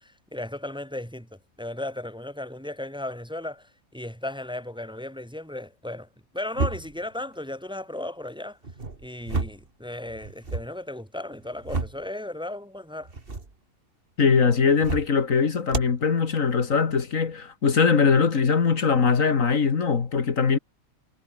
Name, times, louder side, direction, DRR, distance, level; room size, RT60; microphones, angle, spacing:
voice 1, 0.0-6.1 6.3-8.6 9.0-13.1, left 1 dB, 5° right, 2.2 m, -35 dB
sound 1, 6.5-7.1 8.6-9.7 10.1-10.7 11.3-12.1 13.0-13.5 14.7-15.2 15.7-16.0, right 3 dB, 40° right, 2.5 m, -31 dB
voice 2, 14.2-20.6, left 5 dB, 65° left, 2.1 m, -21 dB
omnidirectional pair, 1.5 m